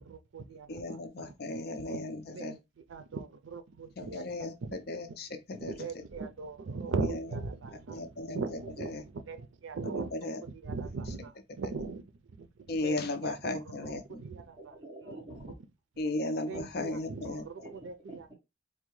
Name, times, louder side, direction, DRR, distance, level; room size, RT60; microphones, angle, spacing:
voice 1, 0.0-0.7 1.2-1.3 2.3-2.6 2.9-4.2 4.6-4.8 5.6-8.0 8.3-10.1 10.6-12.0 12.4-12.5 12.8-13.0 13.2-13.6 14.2-14.4 16.5-17.4, right 4 dB, 90° right, 0.5 m, -38 dB
voice 2, 0.7-2.6 4.0-6.0 7.0-7.3 7.9-9.0 9.9-10.4 11.1-11.2 11.6-11.7 12.7-14.2 16.0-17.4, left 2 dB, 55° left, 0.5 m, -36 dB
voice 3, 14.6-15.6 17.2-17.3 17.6-18.3, right 1 dB, 25° right, 1.4 m, -47 dB
4.4 x 2.1 x 3.1 m
head